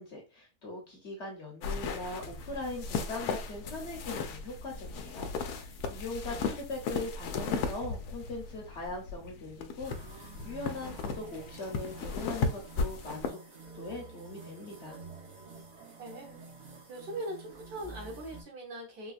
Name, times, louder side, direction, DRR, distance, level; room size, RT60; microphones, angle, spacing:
voice 1, 0.0-13.4 13.7-15.0, left 2 dB, 50° left, 0 dB, 1.0 m, -41 dB
sound 1, 1.6-13.3, left 4 dB, 85° left, 1.1 m, -36 dB
voice 2, 6.3-6.6 16.0-16.4 16.9-19.1, right 1 dB, 80° right, -2 dB, 1.8 m, -41 dB
sound 2, 9.8-18.4, right 3 dB, 50° right, 0.9 m, -49 dB
3.9 x 2.2 x 2.4 m, 0.31 s
omnidirectional pair, 1.6 m